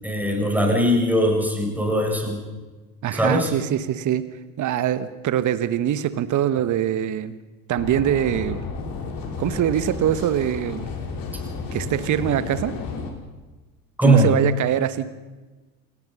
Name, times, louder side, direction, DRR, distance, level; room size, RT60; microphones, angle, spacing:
voice 1, 0.0-2.4 3.1-3.5 14.0-14.3, right 1 dB, 5° right, 1 dB, 7.5 m, -20 dB
voice 2, 3.0-4.2 4.6-7.3 7.7-8.6 9.4-11.0 11.7-12.7 14.0-15.1, right 10 dB, 40° right, 13 dB, 1.4 m, -23 dB
sound 1, 7.8-13.1, left 4 dB, 45° left, 4.7 m, -32 dB
28.5 x 18.5 x 5.6 m, 1.2 s
hypercardioid pair, 70°, 45 cm